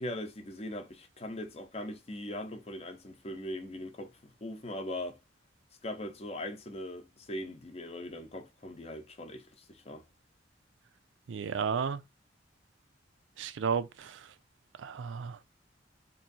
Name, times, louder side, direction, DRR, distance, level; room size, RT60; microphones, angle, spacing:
voice 1, 0.0-5.2 5.8-10.0, left 1 dB, 35° left, 0.7 m, -40 dB
voice 2, 11.3-12.0 13.4-14.3 14.8-15.4, right 6 dB, 85° right, 0.4 m, -33 dB
3.0 x 2.6 x 3.9 m
head